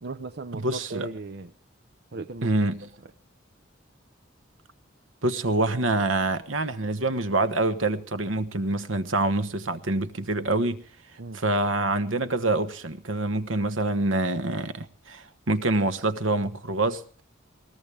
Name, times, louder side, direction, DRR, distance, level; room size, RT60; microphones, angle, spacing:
voice 1, 0.0-1.5 2.1-2.5 3.0-3.1 11.2-11.4, right 3 dB, 60° right, 0.7 m, -37 dB
voice 2, 0.5-1.1 2.4-2.9 5.2-10.8 11.3-17.2, right 2 dB, 85° right, 1.3 m, -26 dB
21.0 x 18.5 x 3.4 m
head